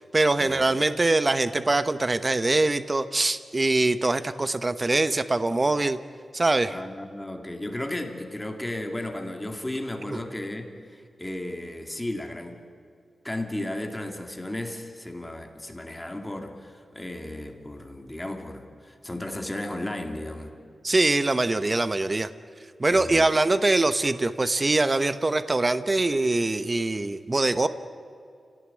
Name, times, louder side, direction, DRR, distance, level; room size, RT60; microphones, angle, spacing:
voice 1, 0.0-6.0 6.3-6.8 10.1-10.2 20.8-22.3 22.8-27.7, right 2 dB, 25° right, 11 dB, 0.9 m, -23 dB
voice 2, 6.7-12.6 13.2-20.5 22.9-23.3, left 1 dB, 10° left, 4 dB, 2.4 m, -34 dB
30.0 x 17.5 x 9.6 m, 2.4 s
wide cardioid pair, 135°, 0 cm